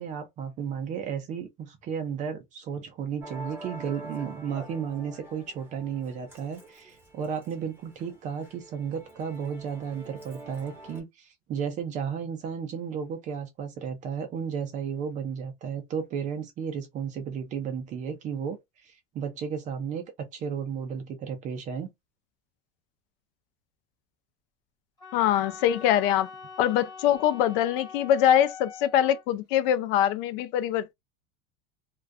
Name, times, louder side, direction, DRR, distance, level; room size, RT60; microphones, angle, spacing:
voice 1, 0.0-21.9, right 7 dB, 25° right, 0.4 m, -33 dB
Musical instrument, 3.2-11.0, right 2 dB, 5° right, 0.9 m, -46 dB
Wind instrument woodwind instrument, 25.0-29.2, left 5 dB, 10° left, 1.0 m, -44 dB
voice 2, 25.1-26.3 26.6-30.9, left 11 dB, 60° left, 0.4 m, -23 dB
2.3 x 2.3 x 2.4 m
cardioid pair, 165°, 32 cm